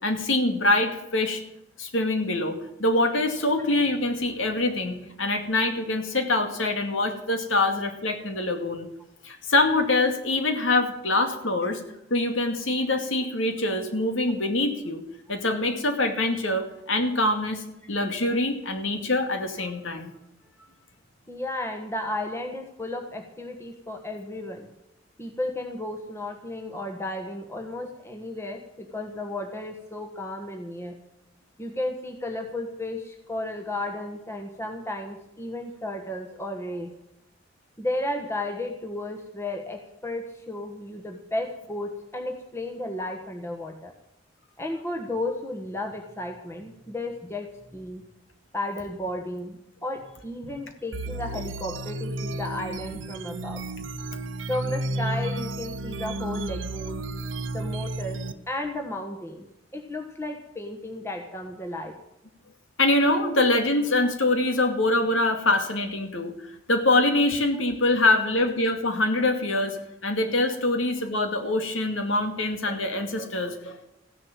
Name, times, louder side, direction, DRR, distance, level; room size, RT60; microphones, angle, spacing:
voice 1, 0.0-1.4 1.8-8.9 9.2-11.8 12.1-15.0 15.3-20.1 62.8-66.3 66.7-73.8, left 2 dB, 85° left, 6 dB, 2.3 m, -24 dB
voice 2, 21.3-24.7 25.2-30.9 31.6-36.9 37.8-43.9 44.6-47.5 47.7-48.0 48.5-53.6 54.5-57.1 57.5-58.2 58.5-59.4 59.7-62.0, left 1 dB, 15° left, 2 dB, 1.3 m, -33 dB
sound 1, 50.9-58.3, right 1 dB, 80° right, 0.9 m, -32 dB
15.0 x 11.0 x 7.4 m, 0.84 s
head